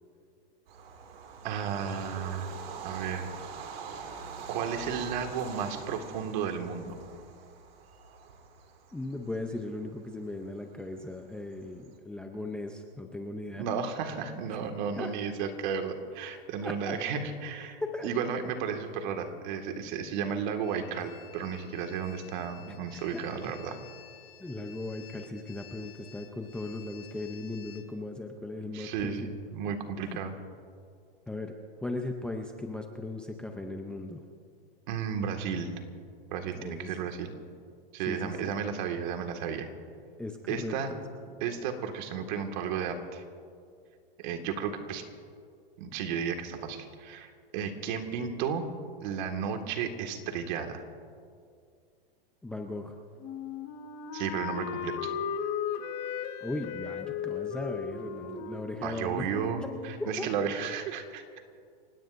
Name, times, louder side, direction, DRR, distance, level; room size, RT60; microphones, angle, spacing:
Bird vocalization bird call bird song / Train, 0.7-11.9, right 6 dB, 70° right, 2.4 m, -44 dB
voice 1, 1.4-2.5 2.8-3.3 4.5-6.9 13.6-23.8 28.7-30.3 34.9-35.7 36.3-37.3 37.9-39.7 40.5-40.9 41.4-43.2 44.2-45.0 45.8-48.7 49.0-50.8 54.1-55.1 58.8-61.2, right 7 dB, 50° right, 5 dB, 1.9 m, -33 dB
voice 2, 8.9-13.7 15.0-15.1 16.4-17.0 17.8-18.1 22.7-22.8 23.1-23.5 24.4-29.4 30.0-30.1 31.3-34.2 36.6-36.9 38.1-38.5 40.2-41.0 52.4-53.0 56.4-59.3 60.0-60.3, left 2 dB, 5° left, 3 dB, 0.5 m, -38 dB
sound 1, 20.6-27.8, left 13 dB, 65° left, 2.5 m, -53 dB
Wind instrument woodwind instrument, 53.2-60.0, left 7 dB, 35° left, 1.4 m, -36 dB
30.0 x 17.5 x 2.6 m, 2.2 s
supercardioid pair, 150°, 30 cm